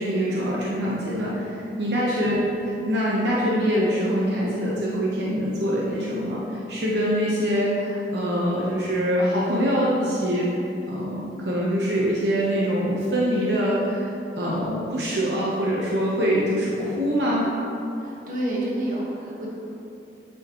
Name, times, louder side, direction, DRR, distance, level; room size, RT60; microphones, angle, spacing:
voice 1, 0.0-2.4 2.8-10.5 10.9-14.1 14.4-17.5, equal, 75° right, -5 dB, 1.0 m, -24 dB
voice 2, 2.1-2.4 14.4-14.7 18.0-19.5, right 1 dB, 50° right, -5 dB, 1.5 m, -30 dB
8.8 x 6.4 x 3.0 m, 2.8 s
head